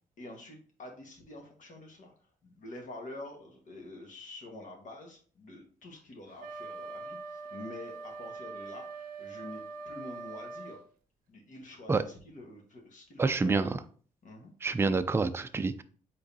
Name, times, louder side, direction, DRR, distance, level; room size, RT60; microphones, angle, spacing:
voice 1, 0.2-2.1 2.4-10.8 11.3-13.6 14.2-14.5, left 1 dB, 60° left, 1 dB, 1.5 m, -47 dB
Wind instrument woodwind instrument, 6.4-10.8, right 3 dB, 85° right, 0.5 m, -43 dB
voice 2, 13.2-13.8 14.6-15.8, right 3 dB, 15° right, 11 dB, 0.4 m, -27 dB
4.9 x 3.8 x 2.8 m, 0.43 s
cardioid pair, 75°, 15 cm